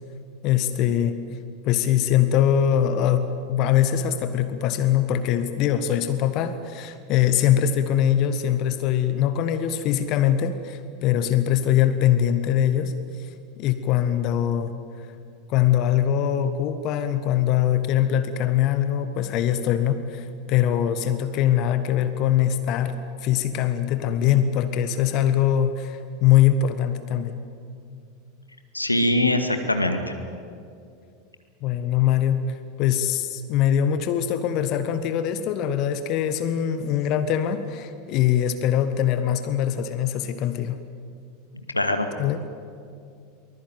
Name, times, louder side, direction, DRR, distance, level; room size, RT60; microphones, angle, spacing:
voice 1, 0.4-1.2 1.6-13.3 13.6-14.7 15.5-27.4 31.6-32.4 32.8-40.8 42.2-42.4, left 10 dB, 45° left, 10 dB, 1.4 m, -22 dB
voice 2, 28.7-30.1 41.7-42.1, left 1 dB, 85° left, 7 dB, 2.0 m, -22 dB
23.5 x 20.5 x 9.2 m, 2.4 s
figure-of-eight pair, 85°, 0 cm